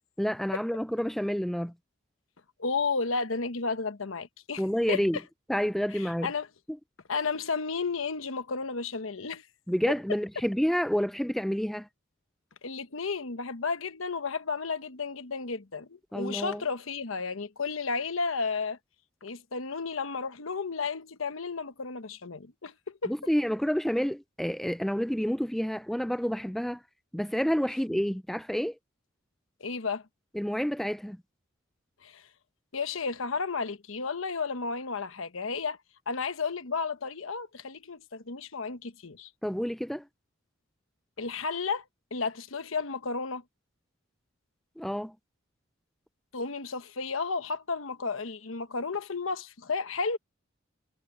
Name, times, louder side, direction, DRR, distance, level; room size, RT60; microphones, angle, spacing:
voice 1, 0.2-1.7 4.6-5.2 5.5-6.3 9.7-11.9 16.1-16.6 23.1-26.8 27.1-28.8 30.3-31.2 39.4-40.0 44.8-45.1, equal, ahead, 0.4 m, -29 dB
voice 2, 2.6-4.6 4.9-5.0 5.9-6.5 7.1-9.4 12.6-18.8 19.2-23.1 29.6-30.0 32.0-32.2 32.7-35.8 36.1-39.3 41.2-41.8 42.1-43.4 46.3-50.2, left 4 dB, 75° left, 1.1 m, -32 dB
head